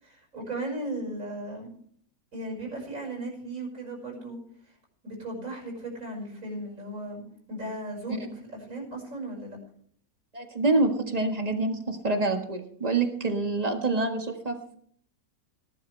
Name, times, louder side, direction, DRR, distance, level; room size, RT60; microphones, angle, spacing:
voice 1, 0.0-1.7 2.3-4.4 5.0-7.2 7.5-8.2 8.7-9.6, right 1 dB, 50° right, 0 dB, 6.0 m, -36 dB
voice 2, 10.3-14.8, right 3 dB, 25° right, 4 dB, 1.6 m, -26 dB
19.0 x 12.0 x 3.3 m, 0.62 s
omnidirectional pair, 1.7 m